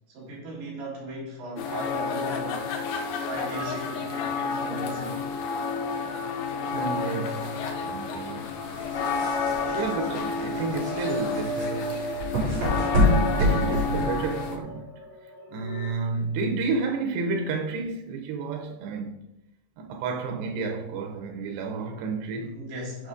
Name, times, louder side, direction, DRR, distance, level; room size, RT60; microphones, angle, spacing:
voice 1, 0.1-2.7 3.1-5.2 22.4-23.1, right 1 dB, 60° right, 3.8 m, -37 dB
sound 1, 1.6-14.6, left 5 dB, 80° left, 2.0 m, -30 dB
sound 2, 3.4-15.9, right 1 dB, 45° left, 3.5 m, -39 dB
voice 2, 6.7-8.7 9.7-12.3 13.1-14.9 15.5-19.2 19.8-22.6, right 4 dB, 85° right, 3.1 m, -31 dB
sound 3, 8.8-14.6, equal, 40° right, 4.1 m, -26 dB
8.1 x 5.5 x 3.8 m
omnidirectional pair, 4.7 m